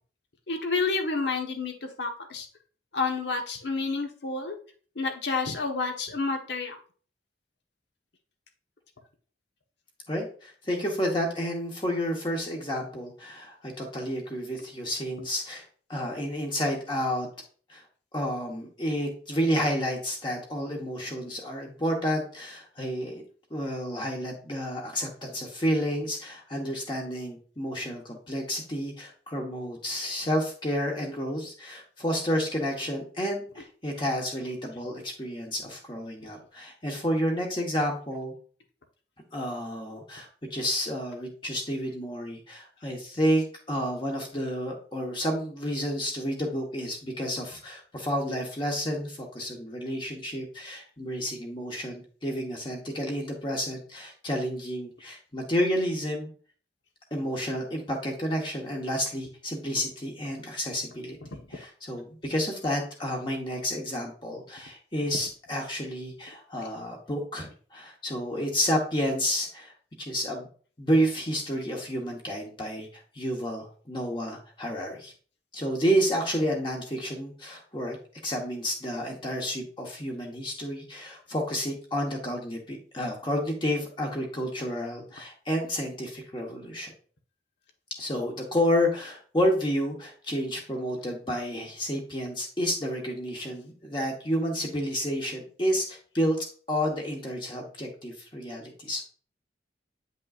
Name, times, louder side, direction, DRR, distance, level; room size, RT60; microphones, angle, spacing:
voice 1, 0.5-2.5 2.9-4.6 4.9-6.8 36.2-36.3 61.3-61.4, left 4 dB, 70° left, 4 dB, 1.1 m, -29 dB
voice 2, 10.1-15.6 15.9-17.3 17.7-17.8 18.1-23.2 23.5-38.3 39.3-56.3 57.1-61.2 61.5-70.5 70.8-75.1 75.5-78.0 78.2-86.9 88.0-96.4 96.7-99.1, equal, 25° left, -1 dB, 1.2 m, -30 dB
8.6 x 5.4 x 2.4 m, 0.43 s
head